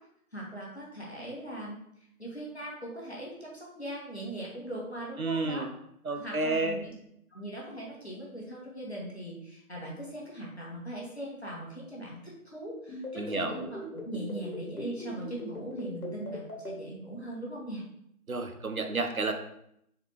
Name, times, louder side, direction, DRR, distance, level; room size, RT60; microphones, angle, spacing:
voice 1, 0.3-1.8 2.2-5.7 6.1-7.0 7.3-17.8, right 1 dB, 45° left, -4 dB, 1.2 m, -40 dB
voice 2, 5.2-5.7 6.1-6.8 13.2-13.5 18.3-19.3, right 3 dB, 70° right, 6 dB, 0.6 m, -30 dB
sound 1, 12.9-16.7, left 1 dB, 75° left, 1.5 m, -39 dB
4.0 x 3.4 x 2.9 m, 0.74 s
figure-of-eight pair, 175°, 45 cm